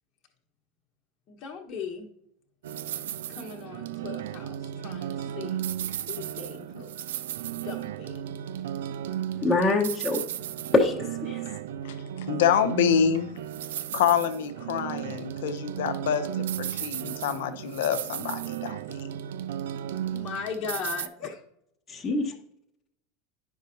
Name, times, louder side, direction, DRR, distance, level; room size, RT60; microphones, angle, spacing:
voice 1, 1.3-2.1 3.3-5.6 6.1-6.9 7.5-8.2 20.1-21.4, left 6 dB, 45° left, 0 dB, 1.1 m, -38 dB
sound 1, 2.6-21.1, right 11 dB, 75° right, 0.4 m, -34 dB
voice 2, 9.4-10.2 10.7-11.4 21.9-22.3, left 2 dB, 20° left, -2 dB, 1.0 m, -24 dB
voice 3, 11.8-13.4 13.9-19.1, left 8 dB, 70° left, 10 dB, 0.7 m, -27 dB
10.0 x 5.4 x 2.6 m, 0.74 s
hypercardioid pair, 90°, 0 cm